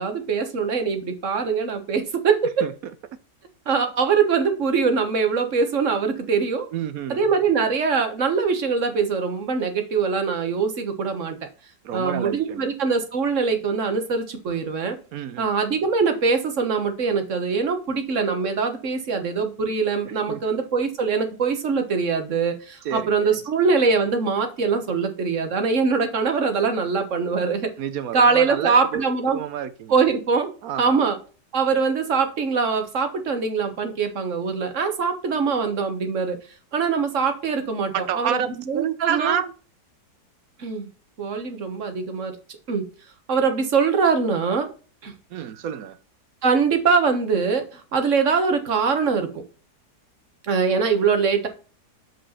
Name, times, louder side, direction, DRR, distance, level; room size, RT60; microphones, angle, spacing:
voice 1, 0.0-2.6 3.7-6.7 7.1-11.4 11.9-15.0 15.4-27.7 28.1-29.4 29.9-30.5 30.8-31.2 31.5-36.4 36.7-39.3 40.6-40.9 41.2-42.4 42.7-42.8 43.3-44.7 45.0-45.1 46.4-49.4 50.5-51.5, right 5 dB, 50° right, 6 dB, 1.4 m, -23 dB
voice 2, 6.7-7.2 11.8-12.7 15.1-15.5 20.3-20.4 22.8-23.4 27.8-29.9 30.6-31.1 37.9-39.5 45.3-46.0, right 9 dB, 65° right, 13 dB, 1.0 m, -29 dB
7.6 x 5.2 x 4.2 m, 0.36 s
omnidirectional pair, 1.8 m